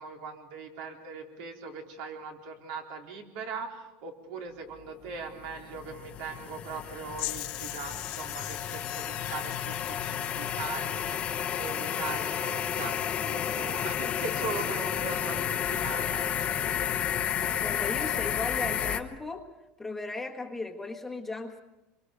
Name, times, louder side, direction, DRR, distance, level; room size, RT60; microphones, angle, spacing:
voice 1, 0.0-15.4 15.7-16.3, right 4 dB, 70° right, 2 dB, 4.1 m, -40 dB
sound 1, 5.2-19.0, left 9 dB, 30° left, 1.1 m, -31 dB
sound 2, 7.2-11.2, left 20 dB, 70° left, 1.1 m, -40 dB
voice 2, 17.6-19.5 19.8-21.6, left 3 dB, 5° left, 2 dB, 1.5 m, -36 dB
26.5 x 24.0 x 5.2 m, 1.0 s
cardioid pair, 155°, 4 cm